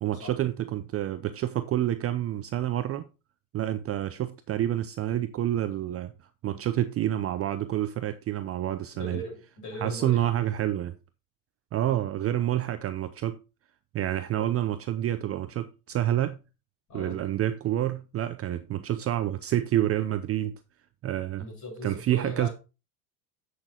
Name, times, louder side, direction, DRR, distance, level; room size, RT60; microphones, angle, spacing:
voice 1, 0.0-3.0 3.5-6.1 6.4-9.2 9.8-10.9 11.7-13.4 13.9-16.4 16.9-20.5 21.0-21.4 21.8-22.5, right 12 dB, 30° right, 0.6 m, -28 dB
voice 2, 8.9-10.3 11.9-12.0 16.9-17.2 21.4-22.5, left 1 dB, 35° left, 6.1 m, -39 dB
8.8 x 6.4 x 3.8 m
hypercardioid pair, 100°, 48 cm